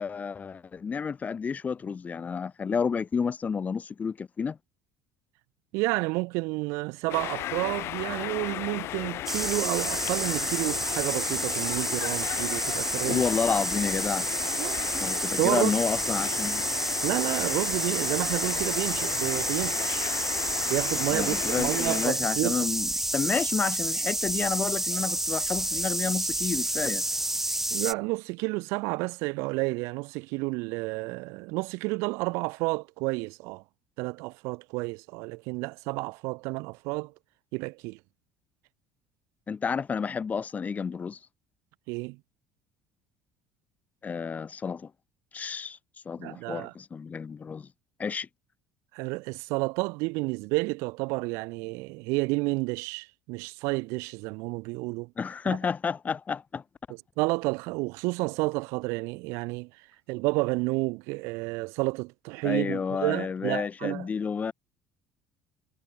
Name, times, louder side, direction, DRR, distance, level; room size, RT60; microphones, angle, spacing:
voice 1, 0.0-4.6 13.1-14.3 14.9-16.6 21.1-27.0 39.5-41.2 44.0-44.9 45.3-45.8 46.1-47.7 48.0-48.3 55.2-56.6 62.4-64.5, left 6 dB, 35° left, 1.9 m, -30 dB
voice 2, 5.7-13.3 14.6-14.9 15.4-15.7 17.0-20.1 20.7-22.7 27.7-33.6 34.0-37.1 37.5-38.0 41.9-42.2 46.2-46.7 48.9-55.1 55.5-55.6 57.2-59.7 60.1-64.1, right 27 dB, 75° right, 5.7 m, -30 dB
sound 1, 7.1-22.1, left 14 dB, 60° left, 1.2 m, -35 dB
sound 2, 9.3-27.9, right 1 dB, 5° right, 1.7 m, -29 dB
supercardioid pair, 80°, 5 cm